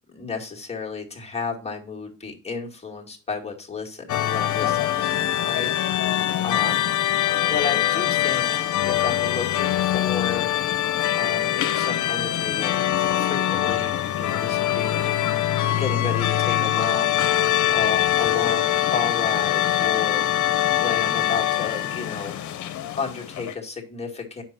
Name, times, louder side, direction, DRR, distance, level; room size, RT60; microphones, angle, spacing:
voice 1, 0.1-6.9 7.4-10.5 11.1-22.3 23.0-24.4, left 5 dB, 20° left, 0 dB, 2.2 m, -33 dB
sound 1, 4.1-23.5, left 12 dB, 75° left, 0.9 m, -23 dB
7.5 x 5.7 x 4.1 m, 0.37 s
cardioid pair, 90°, 30 cm